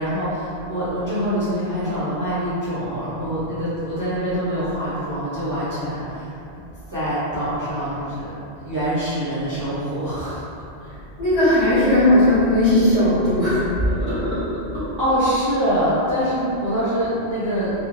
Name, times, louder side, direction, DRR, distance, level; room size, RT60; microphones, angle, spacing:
voice 1, 0.0-6.3 6.9-8.3 8.6-10.4 10.8-10.9 15.0-17.7, equal, 30° right, -13 dB, 0.4 m, -24 dB
voice 2, 11.2-14.9, left 1 dB, 30° left, -13 dB, 1.0 m, -18 dB
2.3 x 2.0 x 3.0 m, 2.8 s
omnidirectional pair, 1.2 m